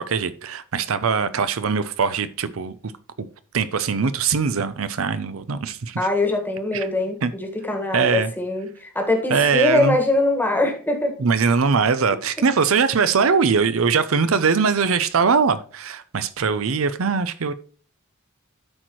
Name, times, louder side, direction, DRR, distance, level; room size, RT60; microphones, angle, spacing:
voice 1, 0.0-2.9 3.5-6.0 6.7-6.9 7.2-7.3 7.9-8.3 9.3-10.0 11.2-17.5, right 5 dB, 65° right, 0.6 m, -21 dB
voice 2, 6.0-11.2, left 2 dB, 10° left, 1.5 m, -22 dB
13.0 x 4.5 x 3.0 m
head